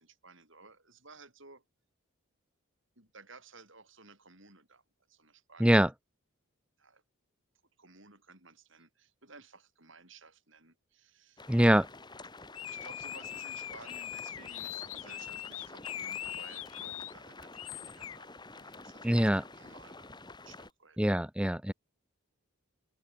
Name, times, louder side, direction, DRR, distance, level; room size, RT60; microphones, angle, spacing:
voice 1, 0.0-1.6 3.0-4.8 5.1-5.9 6.8-7.0 7.8-11.8 12.7-19.3 19.5-20.1 20.5-21.0, right 4 dB, 60° right, 6.9 m, -56 dB
voice 2, 5.6-5.9 11.5-11.9 19.0-19.4 21.0-21.7, equal, 5° right, 0.8 m, -24 dB
sound 1, 11.4-20.7, left 3 dB, 20° left, 2.6 m, -49 dB
sound 2, 12.6-17.1 17.6-18.2, left 12 dB, 75° left, 4.0 m, -41 dB
head